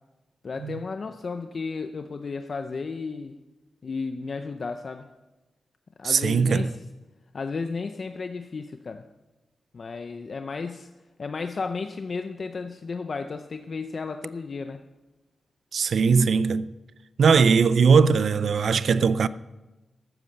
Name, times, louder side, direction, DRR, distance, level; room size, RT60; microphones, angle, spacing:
voice 1, 0.4-3.4 3.8-5.1 6.0-6.8 7.3-9.1 9.7-10.9 11.2-14.8, left 4 dB, 45° left, 0.6 m, -33 dB
voice 2, 6.0-6.7 15.7-16.7 17.2-19.3, right 5 dB, 65° right, 0.5 m, -20 dB
14.0 x 11.0 x 6.7 m
wide cardioid pair, 140°, 0 cm